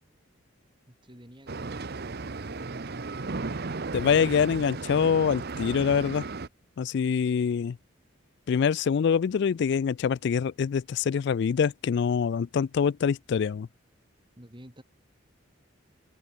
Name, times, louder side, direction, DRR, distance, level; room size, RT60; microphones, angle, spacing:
voice 1, 0.9-3.3 14.4-14.8, equal, 25° right, 3.1 m, -51 dB
sound 1, 1.5-6.5, right 3 dB, 50° right, 0.9 m, -35 dB
voice 2, 3.9-6.3 6.8-7.8 8.5-13.7, left 7 dB, 55° left, 0.3 m, -25 dB
head